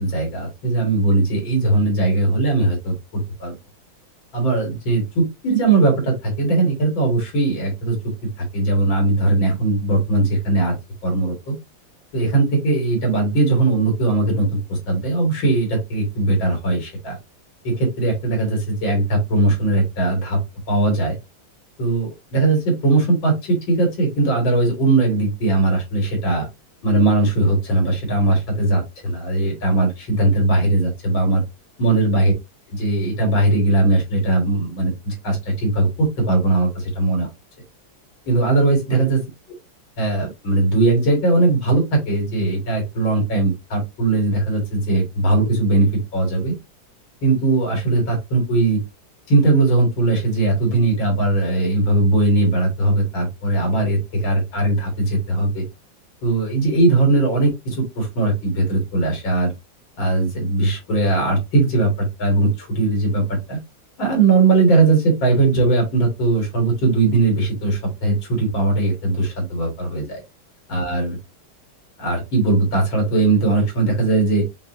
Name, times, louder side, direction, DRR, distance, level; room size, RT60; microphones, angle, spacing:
voice 1, 0.0-3.5 4.3-8.0 8.4-10.8 11.0-11.6 12.1-17.2 17.6-20.4 20.7-21.2 21.8-26.5 26.8-31.4 31.8-32.3 32.7-37.3 38.3-39.2 40.0-46.5 47.2-48.8 49.3-55.6 56.2-59.5 60.0-63.6 64.0-70.2 70.7-71.2 72.0-74.4, right 2 dB, 75° left, 2 dB, 2.6 m, -19 dB
5.3 x 2.8 x 2.6 m, 0.22 s
omnidirectional pair, 2.1 m